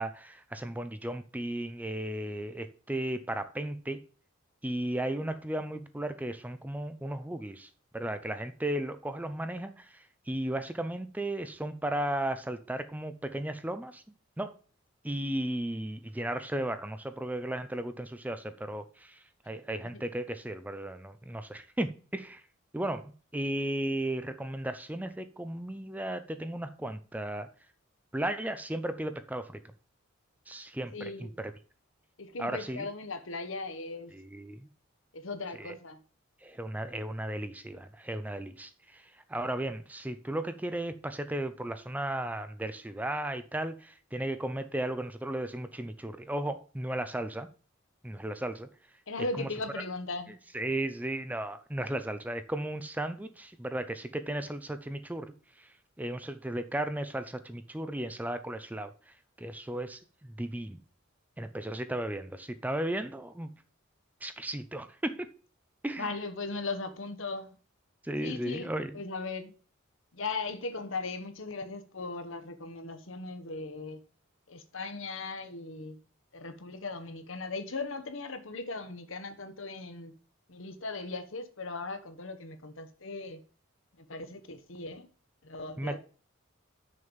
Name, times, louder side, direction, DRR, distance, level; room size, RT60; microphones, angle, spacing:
voice 1, 0.0-4.0 4.6-14.6 15.0-22.4 22.7-27.5 28.1-29.6 30.5-31.5 32.4-32.9 34.1-34.7 35.6-35.8 36.4-47.5 48.0-48.7 49.4-49.5 50.5-60.8 61.4-63.5 64.2-65.3 65.8-66.1 68.0-69.0 85.8-86.0, right 1 dB, 5° right, 0.5 m, -35 dB
voice 2, 30.9-31.3 32.2-34.1 35.1-36.0 49.1-50.3 66.0-67.6 68.2-68.7 68.9-69.5 70.1-74.0 74.5-76.0 76.3-80.1 80.5-83.4 84.0-85.1 85.4-86.0, left 3 dB, 65° left, 1.2 m, -38 dB
6.5 x 5.4 x 7.1 m
head